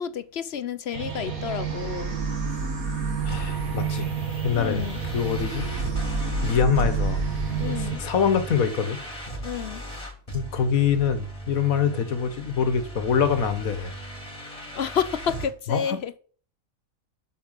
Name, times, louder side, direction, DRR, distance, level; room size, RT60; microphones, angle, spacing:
voice 1, 0.0-2.2 4.5-5.0 7.6-8.0 9.4-9.8 14.6-16.1, left 7 dB, 55° left, 0.9 m, -30 dB
sound 1, 0.9-8.0, right 5 dB, 80° right, 2.3 m, -29 dB
voice 2, 3.2-4.1 4.4-4.9 5.1-5.7 6.2-7.3 7.6-9.0 10.3-13.9 15.7-16.0, left 7 dB, 80° left, 1.7 m, -25 dB
sound 2, 3.3-15.5, right 1 dB, 25° left, 3.0 m, -38 dB
8.7 x 6.7 x 8.1 m
omnidirectional pair, 1.5 m